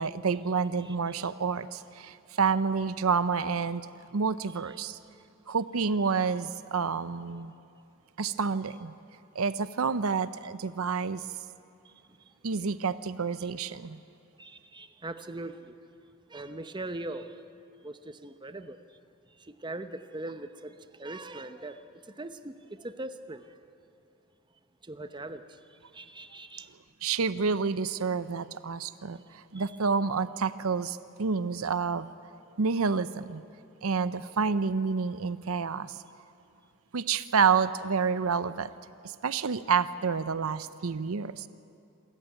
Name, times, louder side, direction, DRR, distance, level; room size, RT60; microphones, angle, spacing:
voice 1, 0.0-3.9 4.1-5.0 5.5-7.5 8.2-8.9 9.3-11.3 12.4-14.0 27.0-32.1 32.6-33.4 33.8-36.0 36.9-38.7 39.0-41.5, right 5 dB, 75° right, 0.6 m, -29 dB
voice 2, 0.8-1.3 11.8-12.3 13.4-13.5 14.4-15.8 16.3-17.4 17.8-19.0 19.3-23.8 24.8-26.8 29.5-29.7, right 2 dB, 20° right, 0.8 m, -41 dB
26.5 x 14.0 x 9.2 m
head